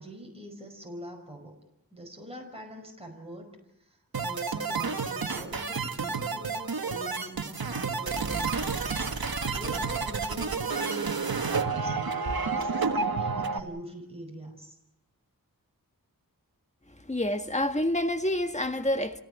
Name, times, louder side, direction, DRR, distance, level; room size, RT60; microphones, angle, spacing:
voice 1, 0.0-1.6 1.9-3.5 3.8-9.0 9.4-12.0 12.3-14.8, equal, 15° right, 5.3 m, -44 dB
sound 1, 4.1-13.6, right 4 dB, 85° right, 1.5 m, -30 dB
voice 2, 17.0-19.2, left 1 dB, 20° left, 1.7 m, -28 dB
28.5 x 17.5 x 8.2 m
wide cardioid pair, 40°, 35 cm